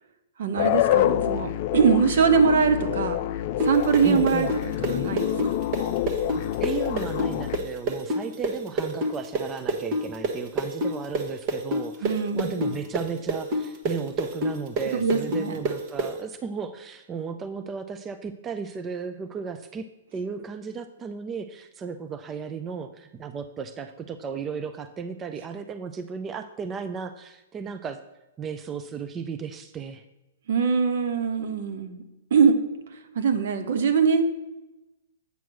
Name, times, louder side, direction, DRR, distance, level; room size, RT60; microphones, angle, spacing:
voice 1, 0.4-3.2 3.6-4.5 4.8-5.7 12.0-12.8 14.9-15.6 30.5-32.0 32.3-32.6 33.1-34.3, right 5 dB, 65° right, 8 dB, 1.1 m, -22 dB
sound 1, 0.6-7.6, left 13 dB, 45° left, 0.4 m, -27 dB
sound 2, 3.6-11.2 11.5-16.1, right 1 dB, 40° right, 1.4 m, -26 dB
voice 2, 4.0-4.5 6.4-19.9 20.1-28.0 28.4-30.0, right 6 dB, 20° right, 9 dB, 0.4 m, -35 dB
8.2 x 4.6 x 6.2 m, 1.0 s
hypercardioid pair, 130°, 0 cm